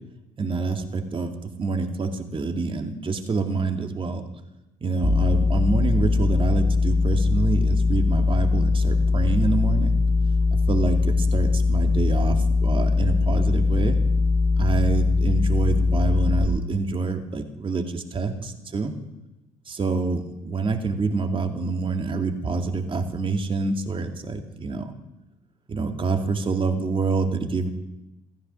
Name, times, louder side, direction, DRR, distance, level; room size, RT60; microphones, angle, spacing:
voice 1, 0.4-4.3 4.8-10.0 10.5-14.0 14.6-18.9 19.7-24.9 25.7-27.7, right 4 dB, 30° right, 4 dB, 2.3 m, -27 dB
sound 1, 5.0-16.5, left 3 dB, 30° left, 3.2 m, -21 dB
15.0 x 13.5 x 6.3 m, 0.94 s
hypercardioid pair, 60°, 17 cm